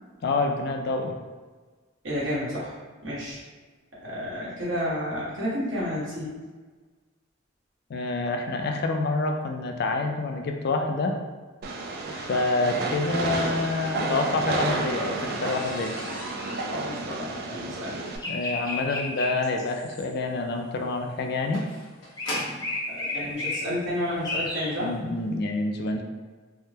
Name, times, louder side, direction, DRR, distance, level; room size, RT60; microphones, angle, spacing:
voice 1, 0.2-1.1 7.9-11.1 12.1-15.9 18.3-21.6 24.8-26.0, left 3 dB, 55° left, 3 dB, 0.3 m, -27 dB
voice 2, 2.0-2.7 3.0-3.4 4.0-6.4 16.7-18.0 22.9-24.9, equal, 80° right, -8 dB, 1.3 m, -31 dB
Train, 11.6-18.2, right 2 dB, 50° right, 0.3 m, -31 dB
sound 1, 13.9-22.8 23.7-23.8 24.3-24.5 24.8-24.9 25.2-25.3, left 1 dB, 80° left, 1.2 m, -40 dB
sound 2, 18.2-20.1 22.2-23.6 24.2-24.7, left 2 dB, 20° left, 0.7 m, -31 dB
3.5 x 2.1 x 2.7 m, 1.4 s
head